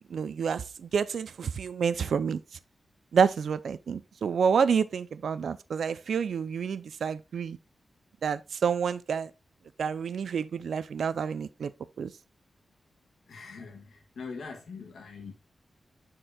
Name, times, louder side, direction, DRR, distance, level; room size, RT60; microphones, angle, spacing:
voice 1, 0.1-2.4 3.1-7.6 8.2-9.3 9.8-11.7 12.0-12.1, right 6 dB, 85° right, 0.4 m, -28 dB
voice 2, 13.3-15.3, left 4 dB, 85° left, 1.7 m, -42 dB
9.9 x 4.5 x 2.3 m
wide cardioid pair, 165°, 0 cm